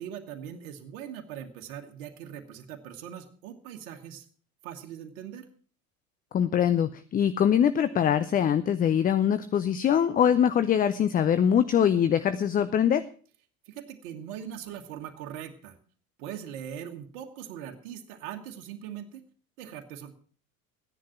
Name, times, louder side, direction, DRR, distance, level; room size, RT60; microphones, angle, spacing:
voice 1, 0.0-4.2 4.6-5.5 13.7-15.8 16.2-19.2 19.6-20.1, right 9 dB, 60° right, 3 dB, 1.6 m, -41 dB
voice 2, 6.3-13.0, left 9 dB, 20° left, 13 dB, 0.5 m, -23 dB
14.5 x 10.5 x 5.8 m, 0.43 s
figure-of-eight pair, 65°, 44 cm